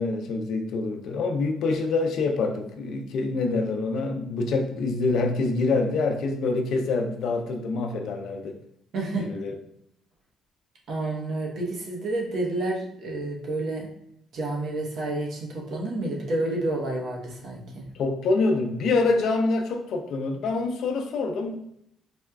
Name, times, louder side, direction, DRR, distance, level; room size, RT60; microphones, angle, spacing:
voice 1, 0.0-8.6 9.2-9.6 17.9-21.6, left 3 dB, 65° left, 4 dB, 0.5 m, -26 dB
voice 2, 8.9-9.3 10.9-13.9 14.3-17.9, right 2 dB, 60° right, -1 dB, 0.9 m, -29 dB
4.2 x 2.3 x 2.3 m, 0.73 s
cardioid pair, 120°, 0 cm